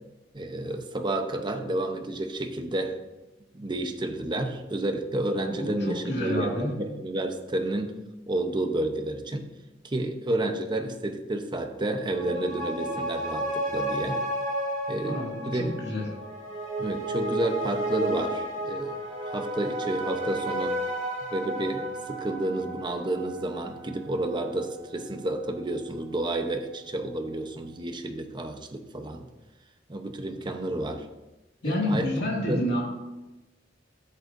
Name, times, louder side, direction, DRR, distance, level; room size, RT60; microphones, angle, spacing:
voice 1, 0.3-3.0 3.5-7.9 8.3-9.5 9.8-14.2 14.9-15.8 16.8-19.0 19.2-20.8 21.3-29.2 29.9-31.1 31.6-32.7, right 1 dB, 25° right, 5 dB, 0.8 m, -30 dB
voice 2, 5.5-6.7 15.0-16.1 31.6-32.8, left 1 dB, 65° left, -3 dB, 2.1 m, -29 dB
sound 1, 12.0-24.7 25.1-25.2, right 1 dB, 40° right, 2.0 m, -33 dB
13.0 x 8.1 x 2.6 m, 1.1 s
head